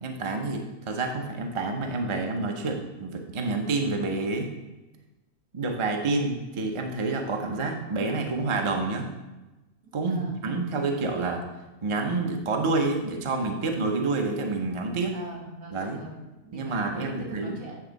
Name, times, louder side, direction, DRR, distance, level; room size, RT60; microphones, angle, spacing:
voice 1, 0.0-4.5 5.5-9.1 9.9-11.4 11.8-15.1 15.7-16.0 16.5-17.6, right 3 dB, 40° right, 2 dB, 0.4 m, -28 dB
voice 2, 10.0-10.4 15.1-17.8, right 1 dB, 65° right, -3 dB, 1.9 m, -43 dB
8.9 x 3.5 x 5.2 m, 1.1 s
omnidirectional pair, 1.7 m